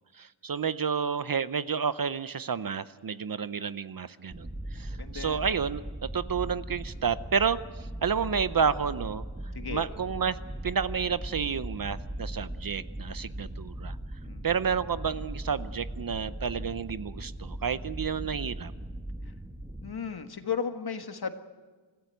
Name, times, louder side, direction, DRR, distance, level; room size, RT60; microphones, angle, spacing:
voice 1, 0.2-9.2 9.7-10.4 10.6-14.0 14.4-18.7, right 6 dB, 45° right, 14 dB, 0.7 m, -30 dB
sound 1, 4.3-19.9, right 1 dB, 10° right, 1.2 m, -39 dB
voice 2, 4.9-5.4 9.5-9.9 14.2-14.5 19.8-21.3, left 6 dB, 50° left, 7 dB, 1.6 m, -35 dB
26.0 x 15.0 x 9.2 m, 1.4 s
wide cardioid pair, 105°, 47 cm